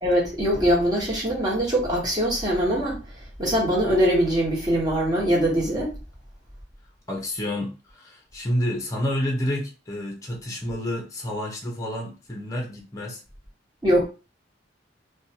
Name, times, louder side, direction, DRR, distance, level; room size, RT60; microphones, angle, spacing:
voice 1, 0.0-3.0 3.4-5.9 13.8-14.0, equal, 20° right, 1.1 m, -22 dB
voice 2, 7.1-13.2, left 1 dB, 15° left, 0.6 m, -29 dB
2.6 x 2.2 x 2.8 m
head